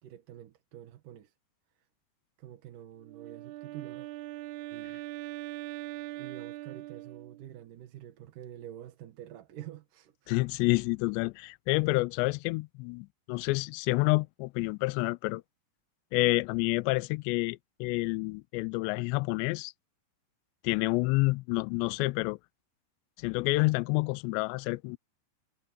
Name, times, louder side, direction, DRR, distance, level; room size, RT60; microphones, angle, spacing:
voice 1, 0.0-1.3 2.4-4.1 4.7-5.0 6.2-10.3 13.3-13.4, right 11 dB, 60° right, 2.5 m, -47 dB
Wind instrument woodwind instrument, 3.0-7.6, right 17 dB, 85° right, 2.5 m, -41 dB
voice 2, 10.3-15.4 16.1-19.7 20.6-22.4 23.2-25.0, left 24 dB, 85° left, 2.7 m, -28 dB
omnidirectional pair, 5.2 m